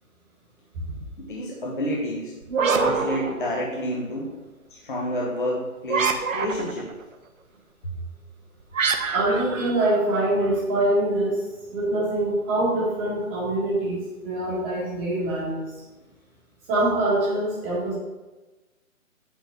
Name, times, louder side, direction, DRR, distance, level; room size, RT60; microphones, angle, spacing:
voice 1, 1.2-2.3 2.7-4.3 4.7-6.9, equal, 35° left, -3 dB, 1.3 m, -29 dB
sound 1, 2.4-4.0 5.9-6.9 8.7-10.6, right 5 dB, 65° right, 1.2 m, -26 dB
voice 2, 9.1-11.4 11.7-15.6 16.7-17.9, right 1 dB, 10° right, -8 dB, 1.5 m, -24 dB
8.9 x 4.2 x 7.3 m, 1.2 s
hypercardioid pair, 175°, 42 cm